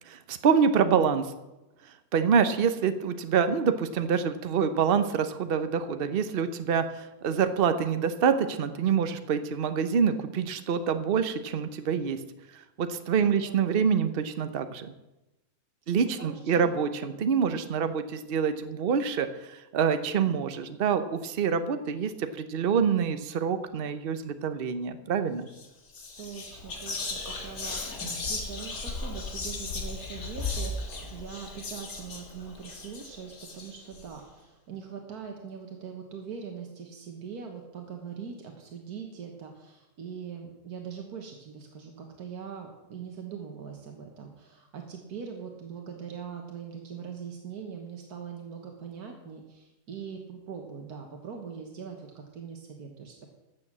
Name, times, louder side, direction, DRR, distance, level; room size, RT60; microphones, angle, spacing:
voice 1, 0.3-1.3 2.1-12.2 12.8-14.9 15.9-25.5, right 6 dB, 45° right, 10 dB, 0.9 m, -26 dB
voice 2, 13.2-13.6 16.2-16.7 26.2-53.3, right 6 dB, 85° right, 2 dB, 1.8 m, -42 dB
Whispering, 25.5-25.7 25.9-34.0, left 3 dB, 75° left, 2.2 m, -36 dB
13.0 x 6.9 x 7.4 m, 1.0 s
omnidirectional pair, 1.6 m